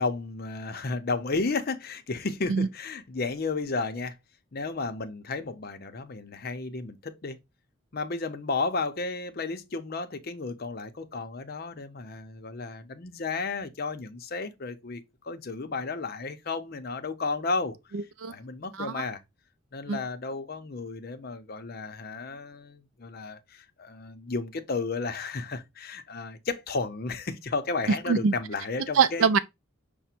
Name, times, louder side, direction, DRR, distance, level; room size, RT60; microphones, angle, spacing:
voice 1, 0.0-4.2 4.5-7.4 7.9-17.7 18.3-19.2 19.7-29.3, left 3 dB, 45° left, 0.6 m, -33 dB
voice 2, 17.9-18.3 18.7-19.0 19.9-20.0 28.1-28.3 28.9-29.4, right 6 dB, 70° right, 0.4 m, -24 dB
5.8 x 2.1 x 4.2 m
head